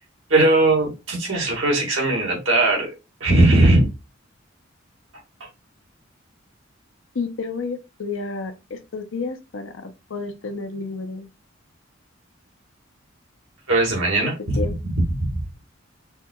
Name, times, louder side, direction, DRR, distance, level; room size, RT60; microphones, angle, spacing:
voice 1, 0.3-2.9 3.2-3.9 5.4-5.5 13.7-14.6 15.2-15.4, right 2 dB, 80° right, 1.9 m, -19 dB
voice 2, 7.1-11.3 14.6-14.7, left 4 dB, 75° left, 0.6 m, -31 dB
5.5 x 2.8 x 2.3 m
head